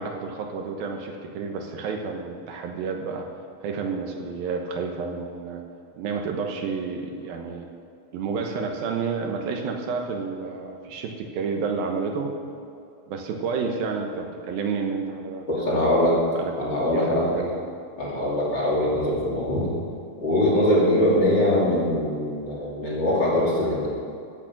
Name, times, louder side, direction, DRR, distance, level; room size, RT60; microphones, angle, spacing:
voice 1, 0.0-3.3 3.6-5.6 5.9-7.7 8.1-12.3 13.1-16.5 16.9-17.6, right 5 dB, 75° right, 3 dB, 2.8 m, -30 dB
voice 2, 15.5-16.2 16.6-17.2 18.0-19.7 20.2-23.9, left 1 dB, 30° left, -6 dB, 3.1 m, -22 dB
16.0 x 8.7 x 6.1 m, 2.5 s
omnidirectional pair, 4.4 m